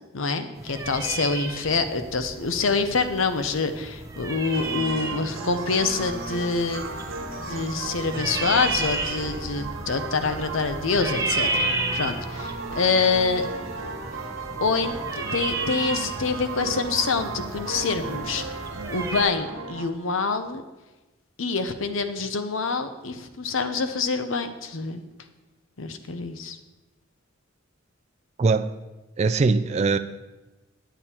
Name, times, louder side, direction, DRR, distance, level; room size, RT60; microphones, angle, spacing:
voice 1, 0.1-6.8 7.4-13.5 14.6-18.6 18.9-20.6 21.4-25.0 25.8-26.6, left 4 dB, 80° left, 9 dB, 0.8 m, -26 dB
sound 1, 0.6-19.2, right 2 dB, 15° right, 0.8 m, -33 dB
sound 2, 4.5-19.9, right 3 dB, 85° right, 1.3 m, -35 dB
voice 2, 28.4-28.7 29.2-30.0, right 4 dB, 30° right, 9 dB, 0.3 m, -21 dB
9.1 x 8.5 x 4.3 m, 1.1 s
head